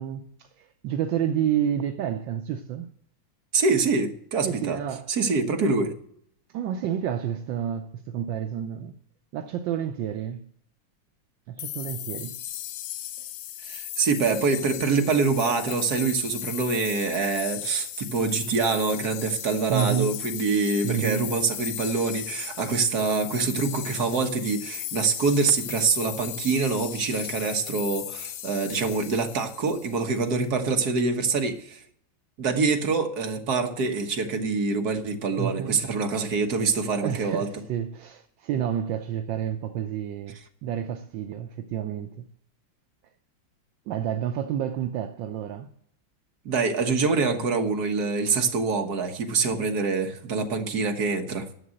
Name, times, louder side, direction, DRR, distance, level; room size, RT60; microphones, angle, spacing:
voice 1, 0.0-2.9 4.4-5.1 6.5-8.9 9.3-10.4 11.5-12.4 19.7-20.3 20.8-21.3 35.4-35.8 36.6-36.7 37.0-42.2 43.9-45.7, right 10 dB, 75° right, 1.4 m, -29 dB
voice 2, 3.5-4.8 5.1-5.9 13.6-31.8 32.4-37.5 46.5-51.5, right 4 dB, 55° right, 1.8 m, -25 dB
sound 1, 11.6-30.3, left 12 dB, 70° left, 1.2 m, -37 dB
11.0 x 7.6 x 7.7 m
omnidirectional pair, 2.1 m